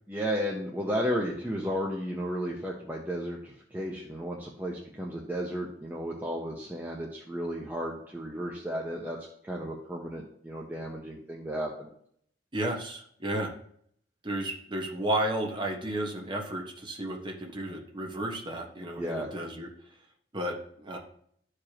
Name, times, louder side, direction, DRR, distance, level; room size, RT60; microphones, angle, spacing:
voice 1, 0.1-9.2 9.4-11.9 19.0-19.3, equal, 10° right, -2 dB, 0.9 m, -33 dB
voice 2, 12.5-13.5 14.2-19.7 20.3-21.0, right 1 dB, 25° right, 1 dB, 1.3 m, -33 dB
13.0 x 5.0 x 2.9 m, 0.65 s
head